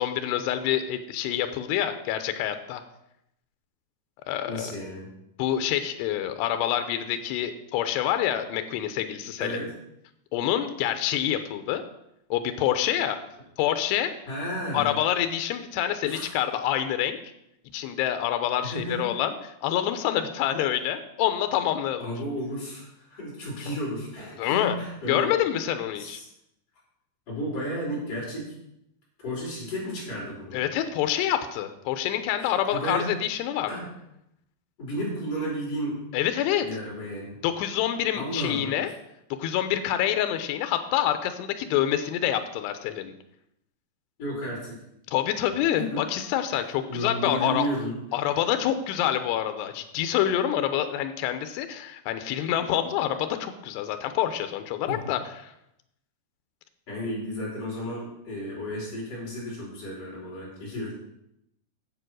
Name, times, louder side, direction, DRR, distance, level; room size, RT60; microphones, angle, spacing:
voice 1, 0.0-2.8 4.3-4.7 5.4-9.6 10.3-11.8 12.3-13.2 13.6-14.1 14.7-17.2 17.7-19.3 19.6-22.1 23.7-23.8 24.4-24.8 25.1-26.2 30.5-33.7 36.1-36.7 37.4-38.9 39.4-43.1 45.1-47.7 48.1-55.5, left 11 dB, 85° left, 8 dB, 2.8 m, -27 dB
voice 2, 4.5-5.1 9.4-9.7 14.3-15.0 16.1-16.3 18.6-19.2 22.0-25.3 26.0-26.3 27.3-28.5 29.2-30.6 32.4-33.1 33.7-33.9 34.8-36.0 36.6-37.3 38.1-38.7 44.2-44.8 45.7-46.0 46.9-48.0 54.9-55.0 56.9-60.9, equal, 35° left, -6 dB, 5.4 m, -33 dB
9.2 x 7.7 x 6.2 m, 0.81 s
omnidirectional pair, 4.9 m